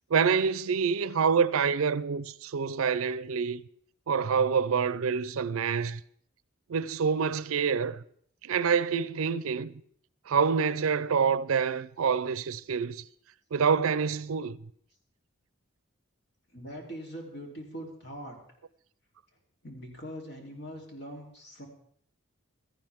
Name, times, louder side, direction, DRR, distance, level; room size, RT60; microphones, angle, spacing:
voice 1, 0.1-3.6 4.1-6.0 6.7-8.0 8.4-9.8 10.3-13.0 13.5-14.6, right 6 dB, 80° right, 0.5 m, -27 dB
voice 2, 16.5-18.4 19.6-21.7, equal, 50° left, 3.3 m, -42 dB
16.0 x 14.0 x 3.6 m
head